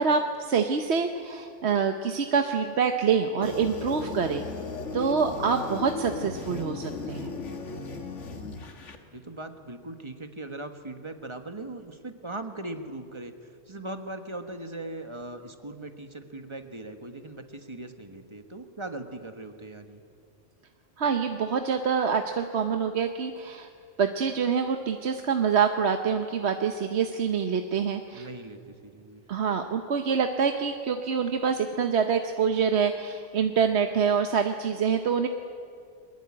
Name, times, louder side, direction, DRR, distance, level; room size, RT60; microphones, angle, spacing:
voice 1, 0.0-4.4 4.9-7.3 21.0-23.7 24.0-28.3 29.3-35.3, right 6 dB, 65° right, 6 dB, 1.2 m, -26 dB
sound 1, 3.4-9.0, left 3 dB, 80° left, 2.0 m, -36 dB
voice 2, 9.1-20.0 28.1-29.2, right 2 dB, 25° right, 7 dB, 1.5 m, -39 dB
22.5 x 21.0 x 8.7 m, 2.3 s
omnidirectional pair, 1.2 m